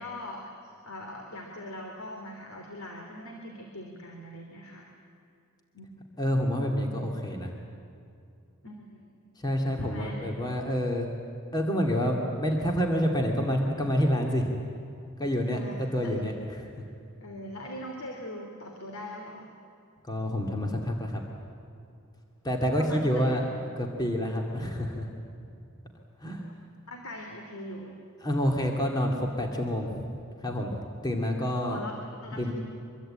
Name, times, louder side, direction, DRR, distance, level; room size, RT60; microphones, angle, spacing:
voice 1, 0.0-4.9 5.7-5.9 8.6-9.2 9.8-10.2 15.5-16.1 17.2-19.5 22.7-23.4 26.9-28.0 31.6-32.5, left 1 dB, 85° left, 1 dB, 3.0 m, -41 dB
voice 2, 6.2-7.5 9.4-11.1 11.5-14.6 15.2-16.7 20.0-21.2 22.4-23.4 23.8-25.1 26.2-26.5 28.2-30.1 30.4-31.8 32.3-32.5, equal, 20° left, 1 dB, 2.3 m, -28 dB
25.0 x 23.0 x 8.8 m, 2.6 s
head